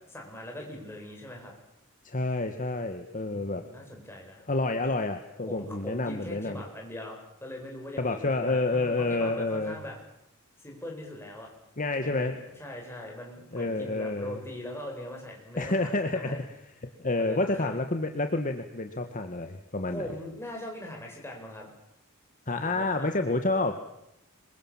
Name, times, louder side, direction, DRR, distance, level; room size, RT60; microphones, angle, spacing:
voice 1, 0.1-1.5 3.3-4.4 5.5-10.0 10.6-11.5 12.0-16.4 17.2-17.8 19.9-21.7 22.6-23.1, left 1 dB, 10° left, 0 dB, 7.7 m, -41 dB
voice 2, 2.0-3.6 4.5-6.6 8.0-9.8 11.8-12.3 13.5-14.4 15.6-16.4 17.0-20.1 22.5-23.9, left 2 dB, 40° left, 6 dB, 1.6 m, -29 dB
27.0 x 24.0 x 7.4 m, 0.82 s
head